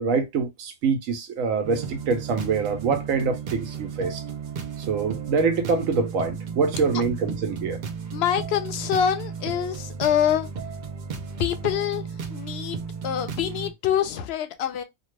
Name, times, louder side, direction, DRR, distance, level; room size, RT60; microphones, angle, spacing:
voice 1, 0.0-4.2 4.9-7.8, right 5 dB, 85° right, 1.1 m, -25 dB
sound 1, 1.6-13.7, right 6 dB, 60° right, 0.5 m, -34 dB
voice 2, 8.1-10.5 11.4-14.8, left 9 dB, 65° left, 0.7 m, -25 dB
2.8 x 2.2 x 3.0 m
omnidirectional pair, 1.4 m